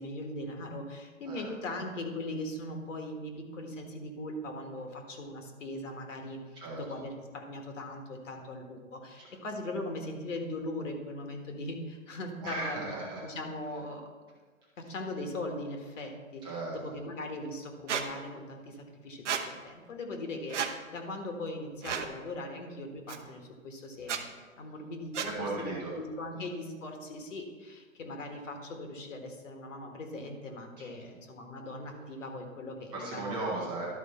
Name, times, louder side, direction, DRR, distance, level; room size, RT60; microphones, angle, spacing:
voice 1, 0.0-6.4 6.7-12.9 13.2-14.1 14.8-16.5 16.7-24.3 24.6-25.3 25.6-33.3, left 1 dB, 60° left, 3 dB, 1.7 m, -40 dB
voice 2, 6.5-6.8 9.2-9.3 12.4-13.2 16.4-16.8 25.1-25.9 26.3-26.5 30.8-31.0 32.9-33.9, right 2 dB, 10° right, -5 dB, 0.9 m, -37 dB
Squeak, 17.9-18.1 19.3-19.4 20.5-20.7 21.8-22.1 23.1-23.2 24.0-24.2 25.1-25.3, right 7 dB, 55° right, 0.9 m, -32 dB
12.0 x 4.7 x 4.3 m, 1.4 s
hypercardioid pair, 155°, 42 cm